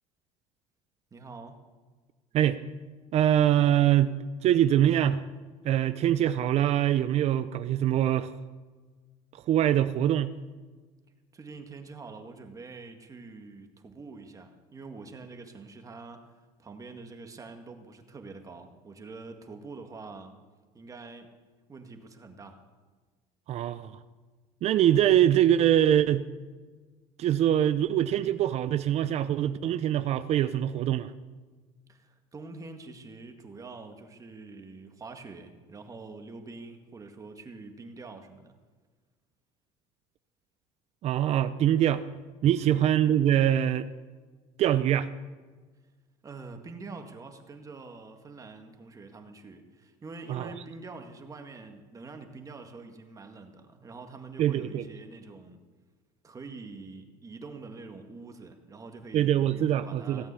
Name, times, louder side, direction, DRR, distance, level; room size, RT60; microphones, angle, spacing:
voice 1, 1.1-1.6 11.3-16.3 16.6-20.3 20.7-21.3 21.7-22.6 31.9-38.5 42.6-42.9 46.2-55.6 56.2-60.3, right 3 dB, 25° right, 5 dB, 1.9 m, -45 dB
voice 2, 3.1-4.1 4.4-5.2 5.6-8.3 9.5-10.3 23.5-23.9 24.6-26.2 27.2-31.1 41.0-42.0 42.4-43.9 44.6-45.1 50.3-50.5 54.4-54.9 59.1-60.2, right 11 dB, 50° right, 13 dB, 0.6 m, -23 dB
17.5 x 9.0 x 8.3 m, 1.4 s
cardioid pair, 120°, 14 cm